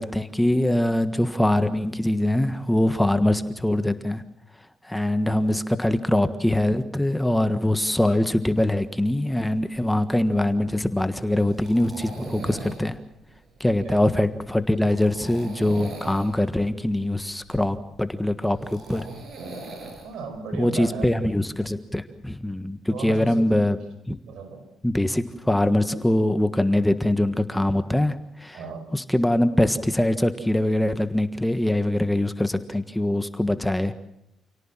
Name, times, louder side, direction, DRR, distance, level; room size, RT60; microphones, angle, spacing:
voice 1, 0.0-4.2 4.9-13.0 13.6-19.1 20.6-23.8 24.1-24.2 24.8-28.2 28.4-28.6 28.9-33.9, left 1 dB, 5° left, 10 dB, 1.5 m, -23 dB
sound 1, 9.5-21.6, right 3 dB, 55° right, 6.7 m, -41 dB
voice 2, 20.0-21.1 22.9-23.6 24.3-24.6 25.9-26.0 28.5-28.9, right 4 dB, 80° right, 8 dB, 5.5 m, -35 dB
28.5 x 18.0 x 7.4 m, 0.80 s
cardioid pair, 90°, 0 cm